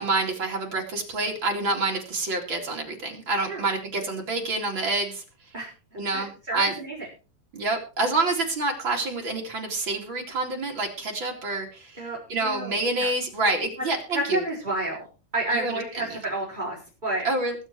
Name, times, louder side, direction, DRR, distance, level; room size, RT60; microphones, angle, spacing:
voice 1, 0.0-5.2 5.9-6.7 7.5-12.0 12.3-14.4 15.5-15.8 17.2-17.5, right 2 dB, 35° right, 1 dB, 2.2 m, -27 dB
voice 2, 6.1-7.0 12.0-13.1 14.1-15.1 15.3-17.3, right 1 dB, 10° right, -5 dB, 4.5 m, -30 dB
21.5 x 7.2 x 4.6 m, 0.34 s
omnidirectional pair, 5.7 m